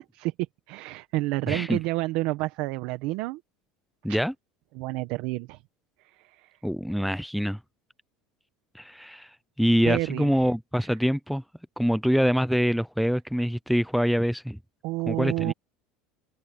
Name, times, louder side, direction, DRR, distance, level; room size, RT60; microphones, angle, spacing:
voice 1, 0.7-3.4 4.1-4.2 4.7-5.6 6.0-6.5 9.8-10.5 14.8-15.5, right 20 dB, 65° right, 1.0 m, -30 dB
voice 2, 1.5-1.8 4.0-4.3 6.6-7.6 8.7-9.3 9.6-11.4 11.8-14.6 15.1-15.5, equal, ahead, 0.4 m, -25 dB
cardioid pair, 140°, 2 cm